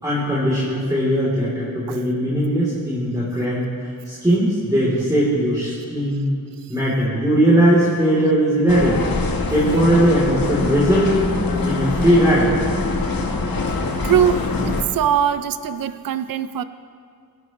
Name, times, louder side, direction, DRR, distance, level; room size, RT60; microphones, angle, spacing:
voice 1, 0.0-3.7 4.0-6.2 6.7-9.0 9.5-11.2 11.6-12.5, right 1 dB, 10° right, -9 dB, 3.2 m, -19 dB
sound 1, 8.7-14.8, left 3 dB, 70° left, 1.4 m, -23 dB
voice 2, 14.0-16.6, right 9 dB, 65° right, 12 dB, 0.5 m, -21 dB
22.5 x 11.5 x 3.1 m, 2.3 s
wide cardioid pair, 125°, 37 cm